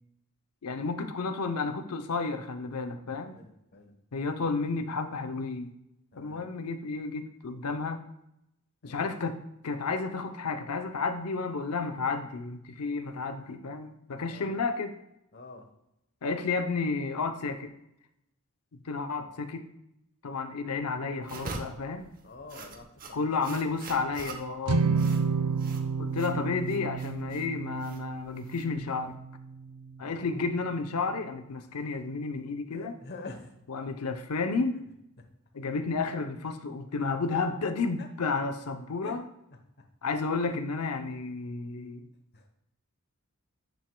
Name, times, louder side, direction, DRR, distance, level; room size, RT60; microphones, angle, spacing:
voice 1, 0.6-3.4 4.1-5.8 6.2-8.0 8.8-9.4 9.6-14.9 16.2-17.7 18.7-19.6 20.2-22.1 23.1-24.9 26.0-29.2 30.0-32.9 33.7-34.8 35.5-39.3 40.0-42.1, left 4 dB, 85° left, 8 dB, 0.7 m, -32 dB
voice 2, 3.3-3.9 6.1-6.4 8.8-9.0 14.3-14.6 15.3-15.7 19.2-19.3 22.2-23.3 23.6-23.8 24.8-25.3 30.0-30.4 32.7-33.5 35.2-35.3 38.0-38.1 39.0-39.2 39.8-39.9 40.5-40.6 42.3-42.5, left 3 dB, 50° left, 5 dB, 1.0 m, -47 dB
sound 1, 21.2-29.1, right 3 dB, 40° right, 0.8 m, -44 dB
sound 2, 24.7-31.1, right 5 dB, 80° right, 0.6 m, -31 dB
10.0 x 6.2 x 2.2 m, 0.84 s
head